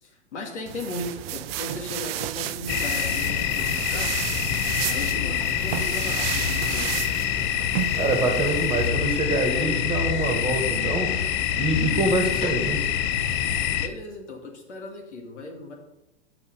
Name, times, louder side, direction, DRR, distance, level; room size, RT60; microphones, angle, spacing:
voice 1, 0.0-4.1 4.9-6.9 13.8-15.7, left 2 dB, 85° left, 1 dB, 2.2 m, -37 dB
sound 1, 0.7-8.9, right 14 dB, 60° right, 0.5 m, -32 dB
sound 2, 2.7-13.9, left 10 dB, 35° left, 0.6 m, -26 dB
voice 2, 7.9-11.1 11.6-12.8, right 2 dB, 15° right, 2 dB, 1.7 m, -25 dB
6.6 x 5.5 x 6.6 m, 0.93 s
hypercardioid pair, 120°, 34 cm